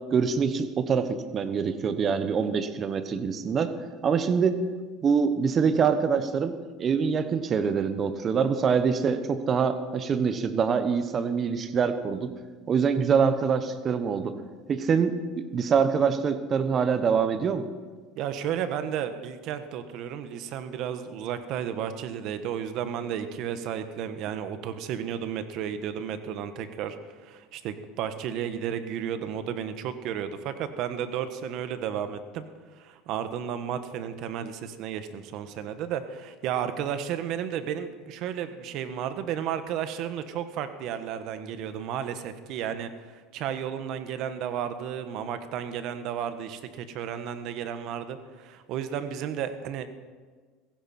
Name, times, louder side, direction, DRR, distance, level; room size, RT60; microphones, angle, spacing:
voice 1, 0.1-3.7 4.0-4.6 5.0-12.3 12.7-14.3 14.7-17.7, right 6 dB, 35° right, 10 dB, 1.2 m, -25 dB
voice 2, 18.1-32.4 32.7-49.9, right 9 dB, 55° right, 10 dB, 1.3 m, -33 dB
16.5 x 15.5 x 4.4 m, 1.5 s
supercardioid pair, 120°, 0 cm